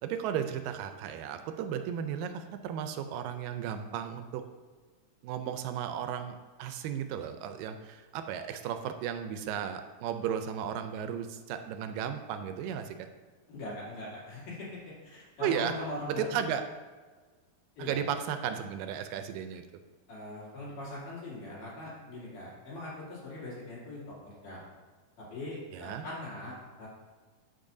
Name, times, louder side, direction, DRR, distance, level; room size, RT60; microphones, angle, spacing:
voice 1, 0.0-4.4 5.2-13.1 15.4-15.7 16.1-16.6 17.8-19.6 25.7-26.1, right 8 dB, 85° right, 8 dB, 2.2 m, -34 dB
voice 2, 13.5-16.4 17.8-18.0 20.1-24.2 24.4-24.6 25.3-26.9, left 2 dB, 70° left, -7 dB, 4.0 m, -41 dB
13.0 x 5.3 x 2.6 m, 1.4 s
omnidirectional pair, 3.9 m